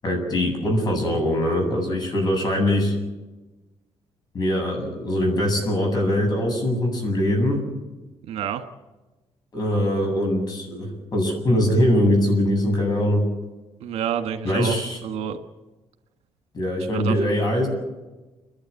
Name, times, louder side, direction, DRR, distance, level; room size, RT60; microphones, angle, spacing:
voice 1, 0.0-2.9 4.3-7.6 9.5-13.2 14.4-15.0 16.5-17.7, left 1 dB, 40° left, 3 dB, 7.9 m, -22 dB
voice 2, 8.3-8.6 13.8-14.8 15.0-15.4 16.9-17.3, right 9 dB, 90° right, 7 dB, 1.6 m, -28 dB
30.0 x 12.0 x 8.4 m, 1.1 s
cardioid pair, 120°, 10 cm